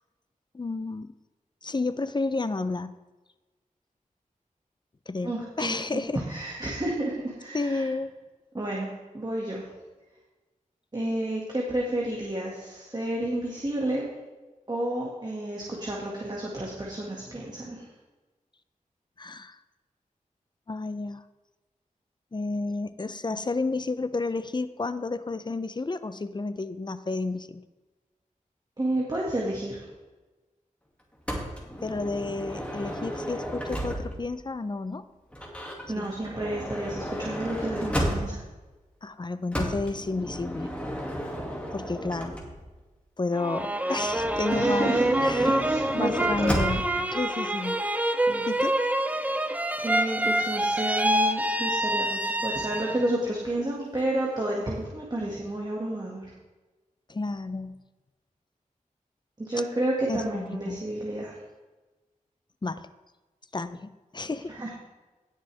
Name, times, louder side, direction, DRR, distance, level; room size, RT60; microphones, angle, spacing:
voice 1, 0.5-1.1 1.6-3.0 5.1-6.2 7.5-8.1 19.2-19.6 20.7-21.2 22.3-27.6 31.8-35.0 36.0-36.1 39.0-40.7 41.7-42.4 43.2-45.0 45.2-45.6 45.9-47.8 48.5-48.8 57.1-57.8 60.1-60.8 62.6-62.9 63.5-64.5, left 3 dB, 35° left, 12 dB, 0.6 m, -31 dB
voice 2, 5.2-5.8 6.1-7.9 8.5-9.7 10.9-14.1 14.7-17.8 28.8-29.8 35.9-38.4 44.5-46.6 47.6-47.7 48.3-48.5 49.3-49.5 49.8-56.3 59.4-61.4 64.6-64.7, right 1 dB, 30° right, -3 dB, 2.0 m, -31 dB
Motor vehicle (road) / Sliding door, 31.3-34.3 35.3-38.6 39.5-42.8 44.0-47.0, equal, 10° left, 2.2 m, -33 dB
sound 1, 43.3-53.2 53.6-54.3, right 1 dB, 10° right, 0.6 m, -26 dB
17.5 x 6.6 x 3.4 m, 1.2 s
wide cardioid pair, 80°, 14 cm